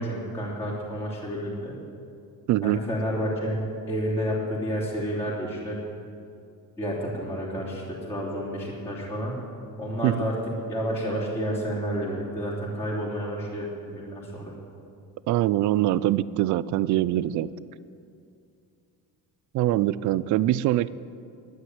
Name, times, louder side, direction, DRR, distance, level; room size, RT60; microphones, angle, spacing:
voice 1, 0.0-1.8 2.6-5.7 6.8-9.4 9.8-10.4 10.7-14.5, equal, 5° left, -9 dB, 3.0 m, -30 dB
voice 2, 2.5-2.8 10.0-10.2 15.3-17.5 19.5-20.9, right 14 dB, 55° right, 18 dB, 0.4 m, -23 dB
11.5 x 9.2 x 9.5 m, 2.5 s
cardioid pair, 160°, 36 cm